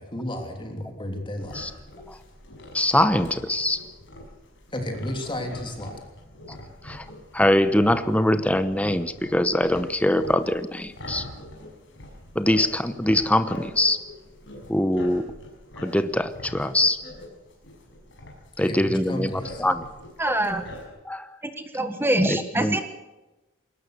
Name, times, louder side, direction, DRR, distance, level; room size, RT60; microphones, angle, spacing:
voice 1, 0.0-1.5 4.7-6.0 18.6-19.6, left 1 dB, 25° left, 3 dB, 3.2 m, -32 dB
sound 1, 1.4-20.9, left 1 dB, 60° left, 6.1 m, -43 dB
voice 2, 2.7-3.8 6.8-7.0 7.3-11.2 12.3-14.0 14.7-15.3 15.8-17.0 18.6-19.9 20.2-20.3 21.1-21.3 22.2-22.8, left 1 dB, 5° left, 11 dB, 0.9 m, -23 dB
voice 3, 20.2-20.6 21.7-22.8, right 1 dB, 10° right, 8 dB, 1.4 m, -24 dB
21.5 x 18.5 x 6.7 m, 1.1 s
head